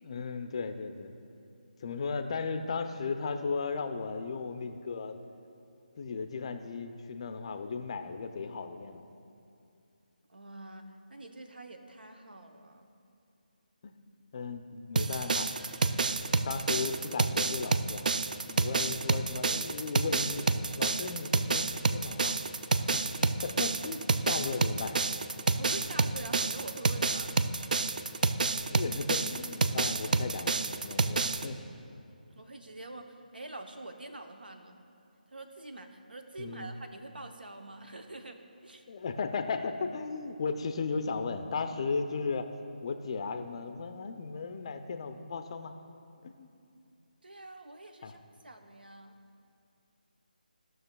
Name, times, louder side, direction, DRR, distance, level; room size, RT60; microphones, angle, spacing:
voice 1, 0.0-1.1 1.8-5.2 6.0-9.0 13.8-14.0 14.3-15.6 16.4-18.1 18.5-20.4 20.8-22.4 22.8-23.0 23.4-25.0 28.7-31.6 36.4-36.7 38.9-42.5 42.8-45.7 46.2-46.5 48.0-48.1, left 4 dB, 35° left, 7 dB, 0.4 m, -36 dB
voice 2, 10.3-12.9 25.6-27.4 32.3-34.8 35.3-38.8 47.2-48.2 48.4-49.1, right 2 dB, 85° right, 6 dB, 0.8 m, -45 dB
sound 1, 15.0-31.5, right 3 dB, 60° right, 0.3 m, -29 dB
16.0 x 6.2 x 2.2 m, 2.6 s
figure-of-eight pair, 160°, 5 cm